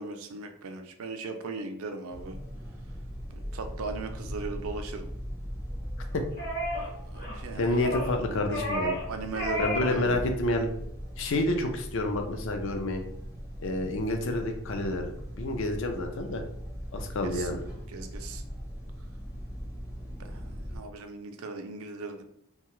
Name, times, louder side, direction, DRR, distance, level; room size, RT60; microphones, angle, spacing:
voice 1, 0.0-2.4 3.3-5.1 6.8-7.8 9.0-10.3 17.2-17.5 17.9-18.4 20.2-22.2, right 3 dB, 70° right, 6 dB, 0.4 m, -38 dB
sound 1, 2.1-20.8, equal, 15° left, 0.6 m, -39 dB
sound 2, 6.4-6.9 7.1-7.4 7.8-8.2 8.5-9.1 9.3-9.9 10.2-10.4, equal, 45° left, 0.9 m, -31 dB
voice 2, 7.6-8.9 9.6-10.7 11.2-13.0 13.6-15.1 15.4-16.4 16.9-17.6, left 2 dB, 60° left, 5 dB, 0.4 m, -29 dB
2.7 x 2.2 x 3.0 m, 0.69 s
head